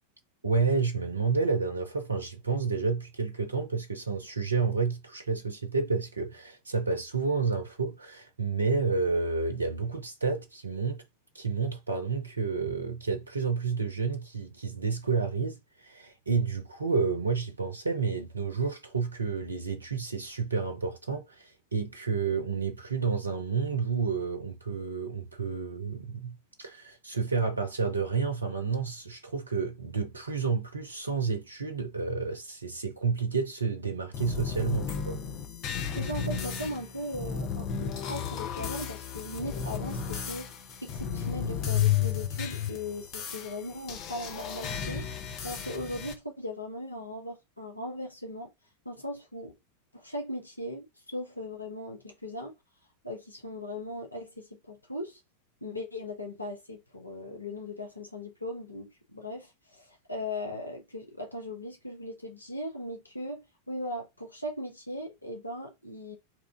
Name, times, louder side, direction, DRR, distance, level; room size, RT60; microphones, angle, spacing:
voice 1, 0.4-11.0 11.3-35.2, right 4 dB, 75° right, 0.5 m, -30 dB
sound 1, 34.1-46.1, left 8 dB, 35° left, 0.6 m, -33 dB
voice 2, 35.9-40.5 40.8-45.0 45.4-48.5 48.8-49.6 49.9-52.5 53.0-55.2 55.6-66.2, left 1 dB, 85° left, 0.7 m, -38 dB
2.9 x 2.4 x 3.4 m
figure-of-eight pair, 90°, 0 cm